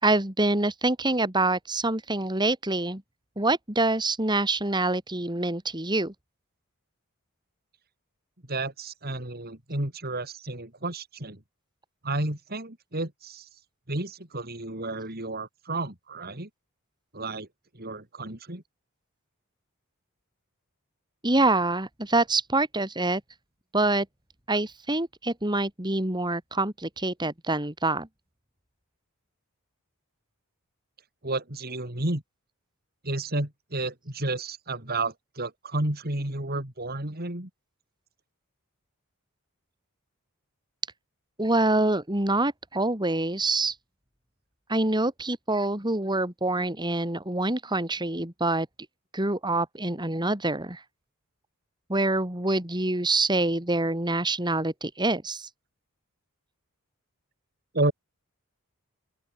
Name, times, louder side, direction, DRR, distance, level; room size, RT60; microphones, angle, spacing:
voice 1, 0.0-3.0 3.4-6.1 21.2-23.2 23.7-24.1 24.5-28.1 41.4-43.8 44.7-48.7 49.1-50.8 51.9-55.5, right 2 dB, 20° right, 3.4 m, -26 dB
voice 2, 8.5-11.4 12.0-13.5 13.9-16.5 17.1-17.5 17.7-18.6 31.2-32.2 33.0-37.5 57.7-57.9, right 2 dB, 45° right, 4.2 m, -31 dB
open air
head